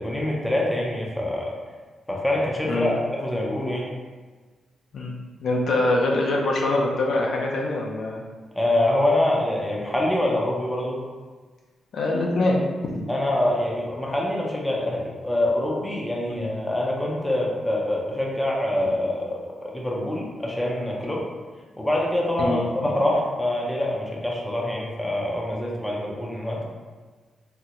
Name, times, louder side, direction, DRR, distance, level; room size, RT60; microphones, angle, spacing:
voice 1, 0.0-1.5 2.1-2.9 3.2-3.9 8.5-11.0 13.1-21.2 21.8-26.6, left 1 dB, 5° left, -3 dB, 0.5 m, -25 dB
voice 2, 2.6-3.0 4.9-8.2 11.9-12.6 12.9-13.0 16.4-16.5 22.4-22.7, left 2 dB, 65° left, -1 dB, 0.5 m, -24 dB
3.7 x 2.1 x 2.8 m, 1.4 s
cardioid pair, 115°, 0 cm